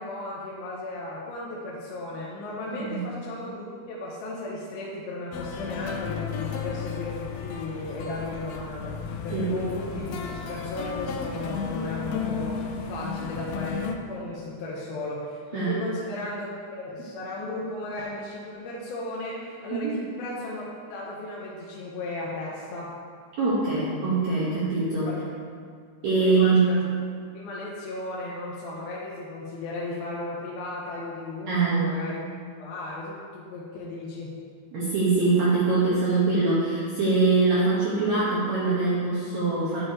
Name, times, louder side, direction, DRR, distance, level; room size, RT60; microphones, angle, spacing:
voice 1, 0.0-13.8 14.1-22.9 25.1-25.2 26.2-26.8 27.3-32.3 32.6-34.3, left 2 dB, 75° left, -5 dB, 2.5 m, -35 dB
sound 1, 5.3-14.0, left 6 dB, 90° left, 2.1 m, -34 dB
voice 2, 23.4-25.1 26.0-26.6 31.5-31.8 34.7-39.8, right 3 dB, 65° right, -9 dB, 1.9 m, -23 dB
10.0 x 6.9 x 2.9 m, 2.1 s
omnidirectional pair, 4.8 m